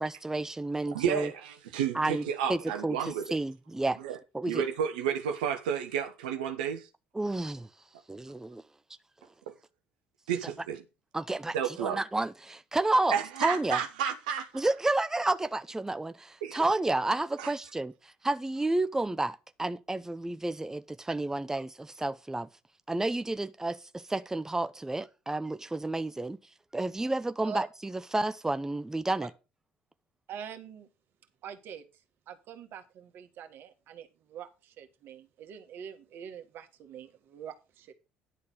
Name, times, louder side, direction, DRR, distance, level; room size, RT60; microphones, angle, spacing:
voice 1, 0.0-1.3 1.9-2.2 2.5-3.0 3.3-4.0 4.3-4.6 7.2-7.7 8.1-8.6 11.1-13.1 13.4-13.8 14.5-22.5 22.9-26.4 26.7-29.3, right 2 dB, 10° right, 0.7 m, -30 dB
voice 2, 0.9-3.4 4.0-4.2 4.5-6.9 10.3-10.8 11.5-12.0 13.1-14.6 16.4-16.6 17.4-17.5, right 8 dB, 85° right, 1.0 m, -31 dB
voice 3, 30.3-30.9 31.4-31.8 32.3-37.9, right 8 dB, 60° right, 1.7 m, -45 dB
11.0 x 4.1 x 7.3 m
hypercardioid pair, 55°, 4 cm